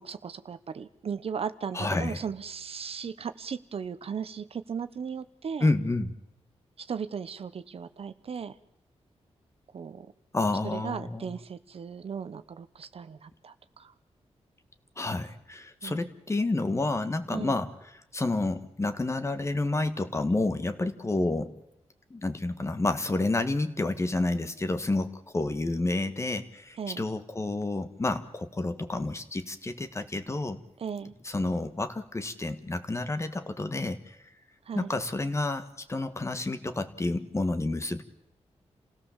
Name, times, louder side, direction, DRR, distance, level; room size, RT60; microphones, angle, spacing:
voice 1, 0.0-5.7 6.8-8.6 9.7-10.1 10.6-13.9 15.8-16.1 17.3-17.6 26.8-27.0 30.8-31.1 34.7-34.9, right 6 dB, 60° right, 13 dB, 0.9 m, -37 dB
voice 2, 1.7-2.2 5.6-6.1 10.3-11.3 15.0-17.7 18.1-21.5 22.1-30.6 31.2-34.2 34.7-38.0, left 2 dB, 25° left, 10 dB, 1.5 m, -29 dB
28.5 x 17.0 x 7.3 m, 0.85 s
wide cardioid pair, 115°, 11 cm